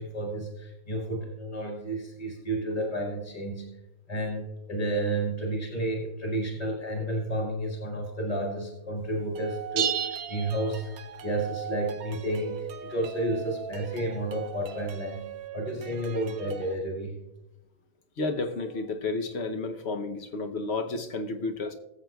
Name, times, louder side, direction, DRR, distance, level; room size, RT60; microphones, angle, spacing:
voice 1, 0.0-3.8 4.1-17.2, right 1 dB, 25° left, -2 dB, 1.8 m, -31 dB
sound 1, 9.4-16.7, right 8 dB, 80° right, 1.2 m, -41 dB
sound 2, 9.8-11.3, right 8 dB, 65° right, 0.6 m, -32 dB
voice 2, 18.2-21.7, left 3 dB, 55° left, 6 dB, 1.0 m, -31 dB
19.5 x 7.7 x 2.3 m, 0.95 s
omnidirectional pair, 1.5 m